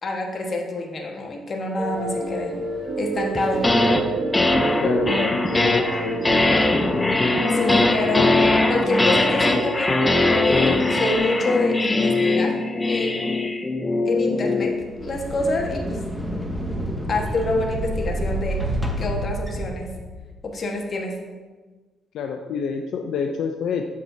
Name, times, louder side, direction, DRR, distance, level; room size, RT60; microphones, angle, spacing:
voice 1, 0.0-2.5 3.0-3.7 7.5-8.4 8.7-13.3 14.0-16.0 17.1-18.7 19.0-19.9 20.4-21.2, left 2 dB, 45° left, 1 dB, 1.4 m, -27 dB
sound 1, 1.8-11.2, right 2 dB, 45° right, 1.1 m, -29 dB
sound 2, 3.3-4.0 4.3-14.7, left 2 dB, 20° left, 0.6 m, -21 dB
voice 2, 4.8-6.5 22.1-23.9, left 6 dB, 75° left, 4 dB, 0.5 m, -28 dB
sound 3, 14.7-20.4, right 1 dB, 5° right, 1.0 m, -29 dB
7.7 x 7.3 x 2.7 m, 1.3 s
cardioid pair, 90°, 0 cm